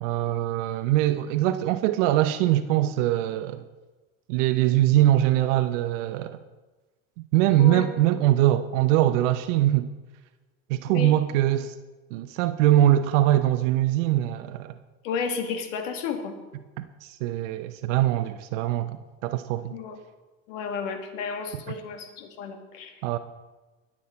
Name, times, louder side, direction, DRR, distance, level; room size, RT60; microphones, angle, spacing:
voice 1, 0.0-3.6 4.3-6.4 7.3-9.9 10.7-11.7 12.1-14.7 16.8-19.7 23.0-23.2, right 13 dB, 65° right, 11 dB, 0.8 m, -22 dB
voice 2, 15.0-16.4 19.7-20.0 20.5-22.9, left 6 dB, 70° left, 6 dB, 2.0 m, -32 dB
21.5 x 7.5 x 4.3 m, 1.2 s
hypercardioid pair, 75°, 39 cm